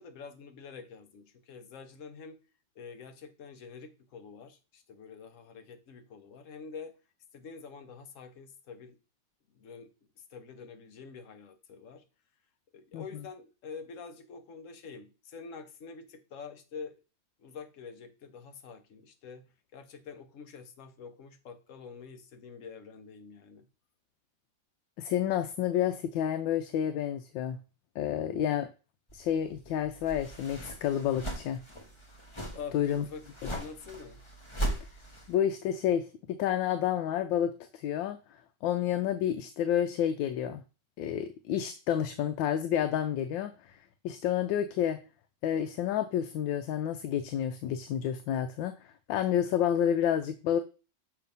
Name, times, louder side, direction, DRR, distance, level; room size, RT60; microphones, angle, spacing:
voice 1, 0.0-2.4 2.8-7.0 7.3-9.0 9.5-9.9 10.2-12.0 12.7-16.9 17.4-19.4 19.7-23.7 32.5-34.2, left 5 dB, 55° left, 1.0 m, -46 dB
voice 2, 25.0-27.6 28.0-28.7 29.1-31.6 32.7-33.0 33.4-33.5 35.3-38.2 38.6-40.6 41.0-43.7 44.0-45.0 45.4-48.7 49.1-50.6, left 10 dB, 80° left, 1.3 m, -29 dB
sound 1, 29.1-35.4, right 1 dB, 20° left, 0.8 m, -39 dB
6.8 x 3.2 x 5.3 m
omnidirectional pair, 2.0 m